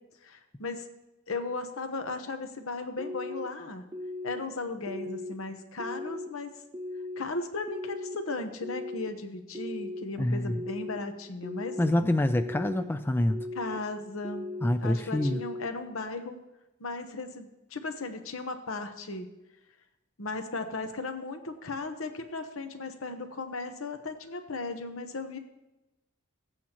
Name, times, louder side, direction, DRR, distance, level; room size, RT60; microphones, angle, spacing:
voice 1, 0.2-0.9 1.3-3.9 4.2-6.5 7.2-11.8 13.5-14.5 14.8-16.4 16.8-19.3 20.2-25.4, left 3 dB, 75° left, 7 dB, 1.0 m, -36 dB
sound 1, 3.0-3.5 3.9-4.4 4.9-5.3 5.8-6.3 6.7-7.2 7.7-8.2 8.6-9.1 9.5-10.0 10.5-11.0 11.4-11.9 12.4-12.8 13.3-13.8 14.2-14.7 15.2-15.7, left 2 dB, 20° right, 0.7 m, -37 dB
voice 2, 10.2-10.6 11.8-13.4 14.6-15.4, left 1 dB, 10° left, 9 dB, 0.3 m, -26 dB
15.5 x 8.4 x 3.0 m, 0.98 s
head